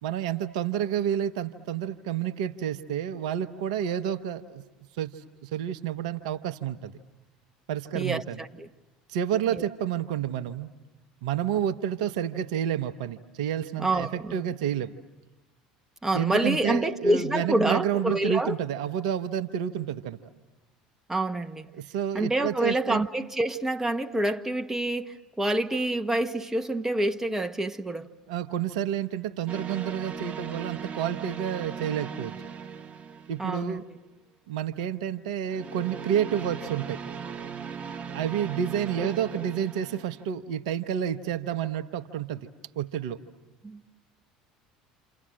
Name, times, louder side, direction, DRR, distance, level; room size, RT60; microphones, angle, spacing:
voice 1, 0.0-4.6 5.0-5.1 5.4-7.0 7.7-8.4 9.1-10.7 11.2-14.9 16.1-20.2 21.7-23.0 28.3-32.3 33.3-33.8 34.5-37.0 38.1-42.5 42.8-43.2, right 9 dB, 70° right, 1.0 m, -29 dB
voice 2, 7.9-8.7 9.5-9.7 13.8-14.4 16.0-18.5 21.1-21.7 22.1-28.1 33.4-33.8 39.0-39.1 39.3-39.4 43.6-43.8, right 1 dB, 10° right, 1.1 m, -27 dB
sound 1, 29.5-33.9 35.5-40.3, right 6 dB, 35° right, 1.3 m, -39 dB
28.5 x 27.5 x 7.6 m
hypercardioid pair, 70°, 4 cm